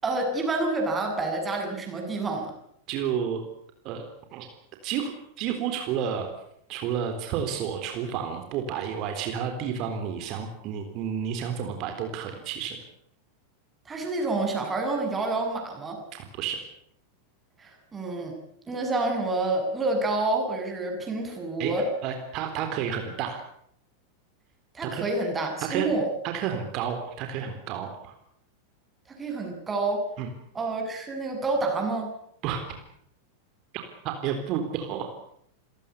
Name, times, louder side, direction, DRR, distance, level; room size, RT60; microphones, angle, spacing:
voice 1, 0.0-2.5 13.9-16.0 17.6-18.3 18.7-21.9 24.7-26.1 29.2-30.0 30.5-32.1, right 2 dB, 15° right, 3 dB, 7.8 m, -28 dB
voice 2, 2.9-3.4 3.8-4.5 4.8-5.1 5.4-6.3 6.7-12.8 16.1-16.6 21.6-21.7 22.0-23.4 24.8-25.0 25.6-25.9 26.2-28.1 30.2-30.3 32.4-32.6 33.7-35.1, right 8 dB, 40° right, 5 dB, 3.8 m, -31 dB
27.5 x 17.0 x 8.5 m, 0.70 s
figure-of-eight pair, 90°, 0 cm